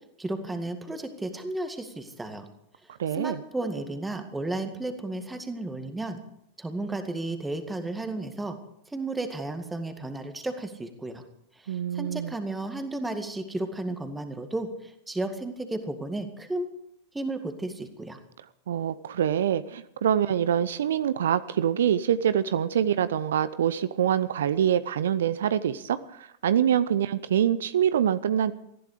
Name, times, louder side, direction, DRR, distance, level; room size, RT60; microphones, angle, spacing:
voice 1, 0.2-2.5 3.1-6.2 6.6-8.6 8.9-11.2 11.6-16.7 17.1-18.2, right 2 dB, 10° right, 7 dB, 2.0 m, -33 dB
voice 2, 3.0-3.4 11.7-12.3 18.7-28.5, right 9 dB, 60° right, 15 dB, 0.7 m, -25 dB
19.0 x 14.5 x 5.0 m, 0.73 s
figure-of-eight pair, 90°, 0 cm